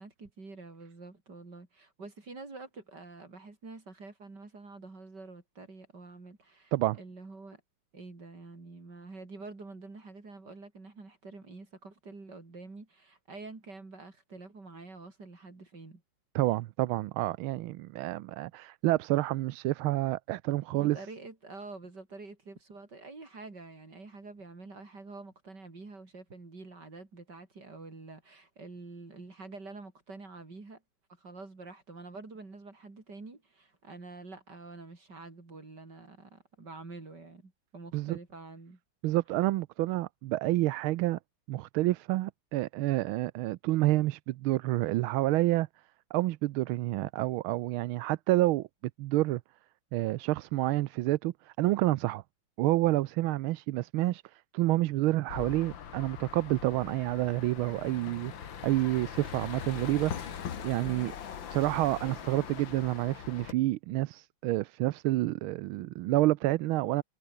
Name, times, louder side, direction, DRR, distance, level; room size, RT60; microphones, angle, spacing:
voice 1, 0.0-7.6 7.9-16.0 20.7-30.8 31.1-38.8 60.8-61.2, right 3 dB, 55° right, 5.0 m, -47 dB
voice 2, 16.3-21.0 37.9-38.2 39.0-41.2 41.5-45.7 46.1-48.7 49.0-49.4 49.9-52.2 52.6-61.1 61.5-67.0, right 17 dB, 80° right, 1.5 m, -29 dB
sound 1, 55.3-63.5, left 8 dB, 65° left, 2.2 m, -41 dB
omnidirectional pair, 2.3 m